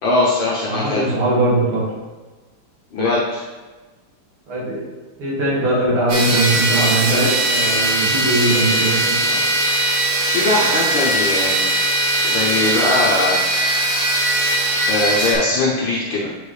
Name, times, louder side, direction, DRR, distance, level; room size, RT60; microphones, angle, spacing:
voice 1, 0.0-1.1 2.9-3.4 10.3-11.6 11.8-11.9 12.2-13.4 14.9-16.3, left 2 dB, 65° left, -6 dB, 1.7 m, -20 dB
voice 2, 0.6-1.8 4.5-4.8 5.2-9.4, right 2 dB, 70° right, -7 dB, 2.9 m, -20 dB
sound 1, 6.1-15.3, right 1 dB, 85° right, 2.4 m, -19 dB
8.0 x 5.2 x 3.3 m, 1.3 s
omnidirectional pair, 2.4 m